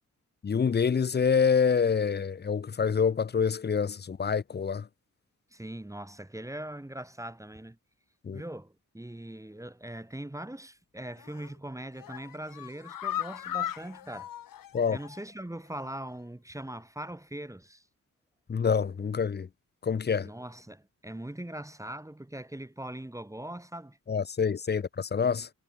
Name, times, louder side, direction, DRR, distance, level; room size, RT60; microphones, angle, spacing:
voice 1, 0.4-4.9 8.2-8.4 14.7-15.0 18.5-19.5 19.8-20.3 24.1-25.5, left 6 dB, 30° left, 0.5 m, -26 dB
voice 2, 5.5-7.8 8.3-14.3 14.9-17.9 20.2-24.0, right 1 dB, 10° right, 1.2 m, -41 dB
sound 1, 11.2-11.5 11.9-15.3 15.6-15.7 16.1-16.2, left 11 dB, 80° left, 0.6 m, -38 dB
wide cardioid pair, 105°, 33 cm